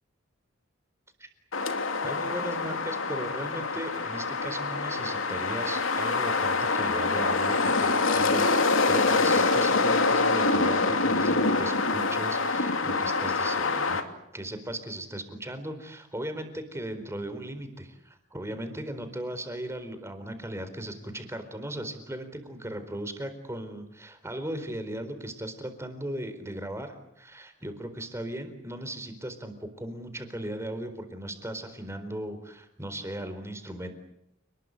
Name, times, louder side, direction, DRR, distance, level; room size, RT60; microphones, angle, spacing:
sound 1, 1.5-14.0, left 3 dB, 75° left, 2.7 m, -25 dB
voice 1, 2.0-8.5 8.9-14.0 14.3-33.9, right 1 dB, 15° right, 9 dB, 4.2 m, -37 dB
30.0 x 20.5 x 8.3 m, 0.81 s
head